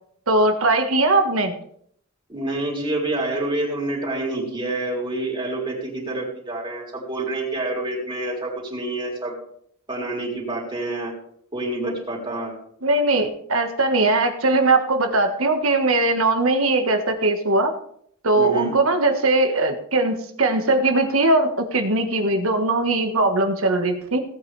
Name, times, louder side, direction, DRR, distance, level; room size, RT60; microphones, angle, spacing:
voice 1, 0.3-1.5 12.8-17.7 18.2-24.2, right 2 dB, 85° right, 6 dB, 1.5 m, -20 dB
voice 2, 2.3-9.4 9.9-11.1 11.5-12.5 18.3-18.7, right 2 dB, 25° right, -2 dB, 3.7 m, -27 dB
17.5 x 8.8 x 3.4 m, 0.66 s
head